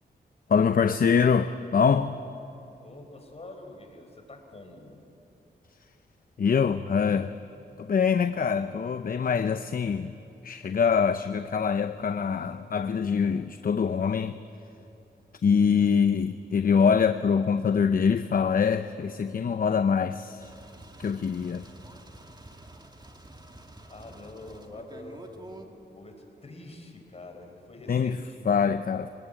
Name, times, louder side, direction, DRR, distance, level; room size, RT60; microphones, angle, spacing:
voice 1, 0.5-2.1 6.4-7.3 7.8-10.1 10.4-14.4 15.4-20.5 21.0-21.7 27.9-28.2 28.5-29.1, left 6 dB, 55° left, 10 dB, 0.7 m, -24 dB
voice 2, 2.8-5.0 23.9-26.2 26.4-28.5, left 2 dB, 35° left, 4 dB, 4.5 m, -46 dB
sound 1, 20.4-25.7, right 2 dB, 25° right, 2.3 m, -48 dB
25.0 x 19.5 x 9.2 m, 2.8 s
cardioid pair, 85°, 18 cm